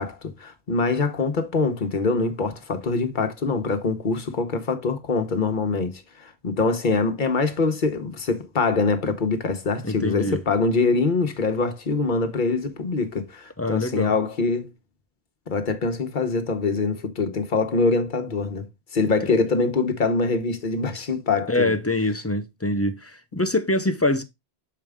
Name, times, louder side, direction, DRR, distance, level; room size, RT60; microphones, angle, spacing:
voice 1, 0.0-14.7 15.5-18.7 18.9-21.7, left 4 dB, 50° left, 1.1 m, -24 dB
voice 2, 9.8-10.4 13.6-14.1 20.9-21.1 21.5-24.2, left 2 dB, 20° left, 0.4 m, -24 dB
6.8 x 4.7 x 3.5 m
omnidirectional pair, 1.1 m